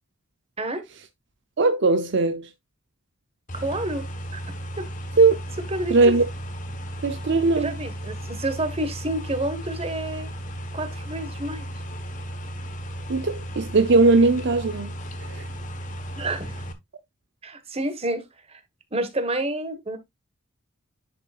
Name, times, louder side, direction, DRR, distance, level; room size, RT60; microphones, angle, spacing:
voice 1, 1.6-2.5 5.2-5.3 5.9-6.2 7.0-7.7 13.1-14.9 15.3-15.4, right 3 dB, 60° right, 0.6 m, -19 dB
sound 1, 3.5-16.7, equal, 40° left, 1.2 m, -35 dB
voice 2, 3.5-4.1 4.3-4.4 4.8-4.9 5.7-6.1 7.6-10.3 10.7-11.7 16.2-16.6 17.4-18.6 18.9-20.0, right 1 dB, 30° right, 1.4 m, -29 dB
10.5 x 5.4 x 2.4 m
head